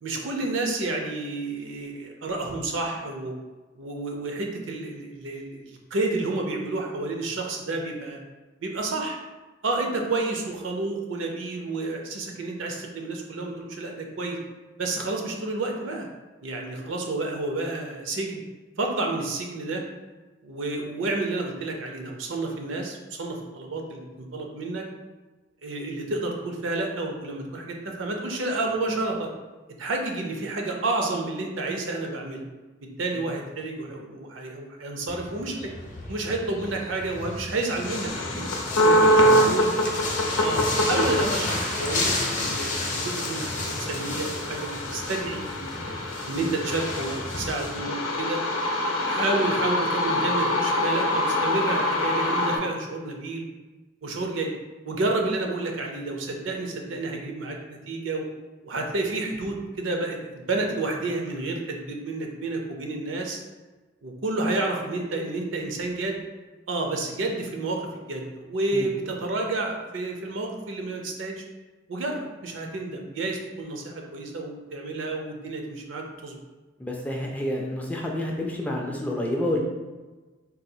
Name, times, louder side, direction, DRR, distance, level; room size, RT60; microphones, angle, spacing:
voice 1, 0.0-3.3 3.8-8.2 8.6-9.2 9.6-14.4 14.8-16.1 16.4-18.4 18.8-19.8 20.4-24.8 25.6-29.3 29.8-32.4 33.0-35.7 36.1-38.3 38.8-39.7 40.3-40.6 40.9-45.7 46.2-48.4 49.0-53.5 54.0-54.5 54.8-58.2 58.6-63.4 64.0-66.2 66.7-67.8 68.1-71.4 71.9-76.4, right 2 dB, 80° right, 1 dB, 0.6 m, -30 dB
sound 1, 35.1-47.8, left 2 dB, 40° left, 0.6 m, -33 dB
sound 2, 37.9-52.6, equal, 90° left, 0.6 m, -25 dB
voice 2, 38.9-39.4 68.7-68.9 76.8-79.6, left 1 dB, 10° left, -1 dB, 0.3 m, -29 dB
4.0 x 2.3 x 2.7 m, 1.2 s
head